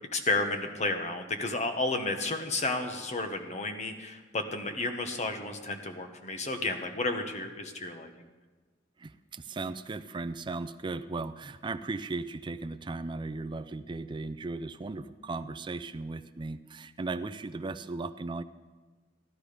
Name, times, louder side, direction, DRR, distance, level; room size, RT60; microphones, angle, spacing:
voice 1, 0.1-8.3, left 2 dB, 40° left, 5 dB, 1.2 m, -32 dB
voice 2, 9.0-18.4, right 3 dB, 25° right, 12 dB, 0.4 m, -37 dB
15.5 x 11.5 x 5.1 m, 1.3 s
head